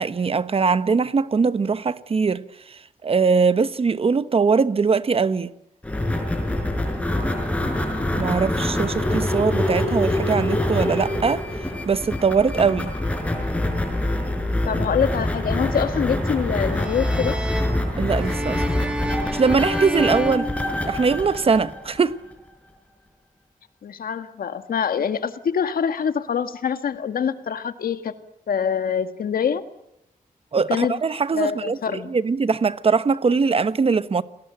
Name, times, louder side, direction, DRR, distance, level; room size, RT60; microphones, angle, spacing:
voice 1, 0.0-2.4 2.7-5.5 8.2-11.4 11.9-12.9 18.0-18.6 19.3-20.5 20.9-22.2 30.5-34.2, right 5 dB, 40° right, 1.1 m, -21 dB
sound 1, 5.8-22.3, left 1 dB, 10° left, 5.2 m, -25 dB
voice 2, 14.6-17.4 23.8-28.1 28.5-29.6 30.7-31.0 31.3-32.1, left 7 dB, 85° left, 1.8 m, -25 dB
sound 2, 16.7-21.3, equal, 5° right, 3.5 m, -30 dB
29.5 x 19.5 x 9.0 m
wide cardioid pair, 145°, 15 cm